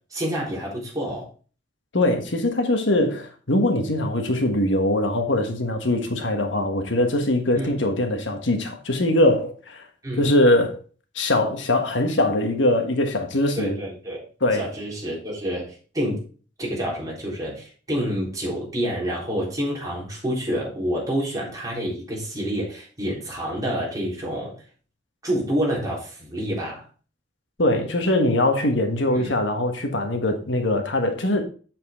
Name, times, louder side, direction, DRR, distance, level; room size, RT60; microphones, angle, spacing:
voice 1, 0.1-1.3 7.5-7.7 10.0-10.3 13.6-14.2 14.5-16.2 16.6-24.6 25.2-26.8 29.1-29.4, equal, 20° right, 3.9 m, -28 dB
voice 2, 1.9-9.8 10.2-10.8 11.1-13.8 14.4-14.7 27.6-31.4, left 1 dB, 80° left, 1.5 m, -22 dB
7.6 x 7.6 x 3.6 m
head